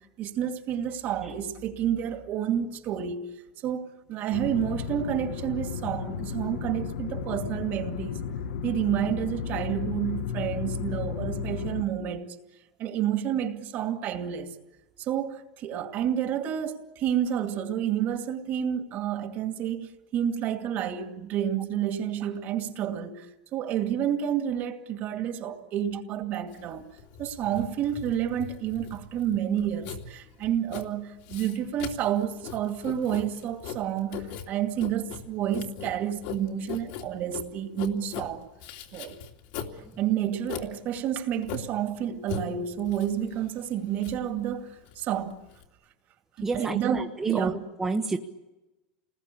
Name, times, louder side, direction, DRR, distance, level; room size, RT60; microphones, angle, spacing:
voice 1, 0.0-3.2 3.6-8.2 8.6-12.3 12.8-14.5 15.0-23.3 23.5-26.9 27.2-38.5 38.9-39.2 40.0-45.4 46.4-47.6, right 10 dB, 40° right, 2.4 m, -30 dB
sound 1, 4.3-11.8, left 7 dB, 90° left, 1.6 m, -34 dB
Writing, 26.5-45.6, left 7 dB, 65° left, 2.8 m, -40 dB
voice 2, 46.4-48.2, right 3 dB, 10° right, 1.2 m, -29 dB
29.5 x 20.0 x 8.6 m
supercardioid pair, 155°, 5 cm